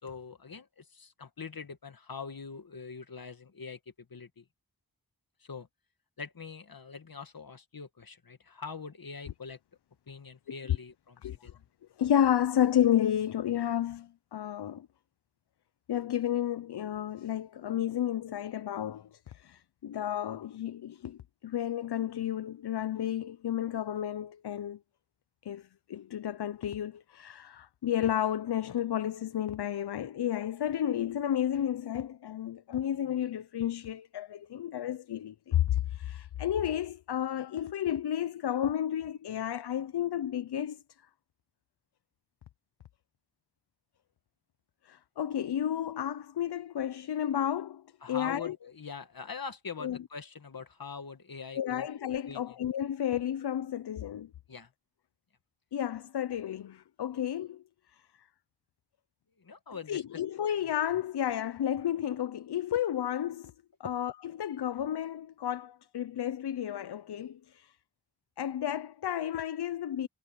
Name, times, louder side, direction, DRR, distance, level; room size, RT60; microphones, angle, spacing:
voice 1, 0.0-4.5 5.4-5.7 6.2-9.6 10.1-11.6 48.0-51.9 52.3-52.6 54.5-54.7 59.4-60.2, left 5 dB, 60° left, 2.0 m, -43 dB
voice 2, 12.0-14.9 15.9-24.8 25.4-40.8 44.9-48.5 49.8-50.0 51.6-54.3 55.7-57.6 59.9-63.5 63.8-67.7 68.4-70.1, left 10 dB, 90° left, 0.6 m, -32 dB
wide cardioid pair, 60°, 39 cm